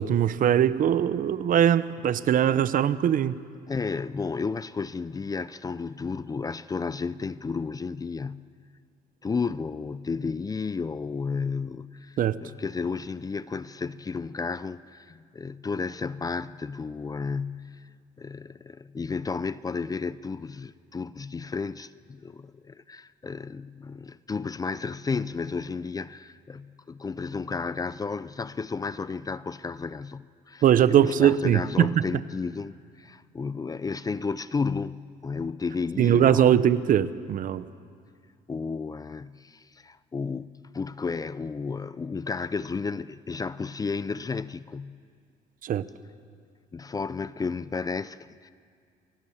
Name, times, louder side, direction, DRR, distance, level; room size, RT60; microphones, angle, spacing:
voice 1, 0.0-3.4 12.2-12.4 30.6-32.0 36.0-37.7 45.6-45.8, right 10 dB, 55° right, 0.9 m, -21 dB
voice 2, 3.7-8.5 9.2-17.8 18.2-36.7 38.5-45.0 46.7-48.5, left 4 dB, 20° left, 0.5 m, -32 dB
29.5 x 23.5 x 7.2 m
cardioid pair, 110°, 17 cm